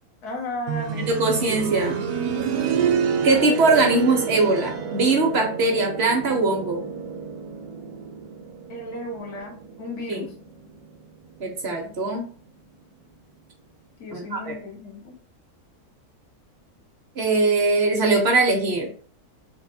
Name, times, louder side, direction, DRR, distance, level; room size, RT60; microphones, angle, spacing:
voice 1, 0.2-1.1 8.7-10.3 14.0-15.2, left 1 dB, 80° left, 0 dB, 1.6 m, -34 dB
sound 1, 0.7-11.4 12.8-12.9, right 7 dB, 80° right, 1.1 m, -29 dB
voice 2, 1.1-2.0 3.2-6.9 10.1-10.3 11.4-12.3 14.1-14.5 17.2-18.9, right 3 dB, 50° right, 2 dB, 0.9 m, -21 dB
3.4 x 3.1 x 2.6 m, 0.44 s
omnidirectional pair, 1.6 m